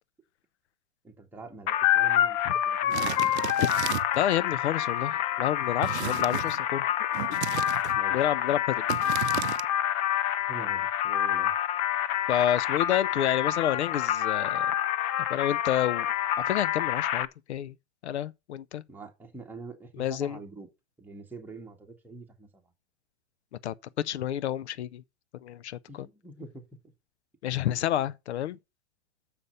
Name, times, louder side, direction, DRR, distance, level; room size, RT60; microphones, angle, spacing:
voice 1, 1.0-3.3 7.9-8.2 10.5-11.5 18.9-20.7 21.0-22.6 25.9-26.9, right 3 dB, 5° right, 1.7 m, -45 dB
sound 1, 1.7-17.3, left 11 dB, 25° left, 0.4 m, -27 dB
sound 2, 2.9-4.2 5.8-6.6 7.1-8.0 8.9-9.7, right 14 dB, 85° right, 0.5 m, -34 dB
voice 2, 4.2-6.9 7.3-7.4 8.1-8.9 12.3-14.7 15.3-16.1 16.5-17.7 18.0-18.8 20.0-20.4 23.6-23.7 24.0-25.0 25.4-25.8 27.4-28.6, left 11 dB, 90° left, 0.6 m, -29 dB
6.8 x 5.5 x 6.7 m
hypercardioid pair, 135°, 33 cm